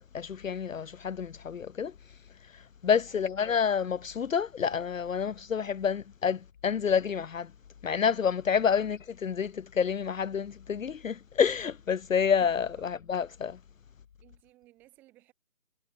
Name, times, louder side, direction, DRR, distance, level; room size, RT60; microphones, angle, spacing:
voice 1, 0.0-1.9 2.8-7.5 7.8-13.6, left 7 dB, 70° left, 0.6 m, -28 dB
voice 2, 3.1-3.4 8.7-8.9 12.8-12.9 14.2-15.3, right 17 dB, 5° right, 5.1 m, -60 dB
figure-of-eight pair, 175°, 41 cm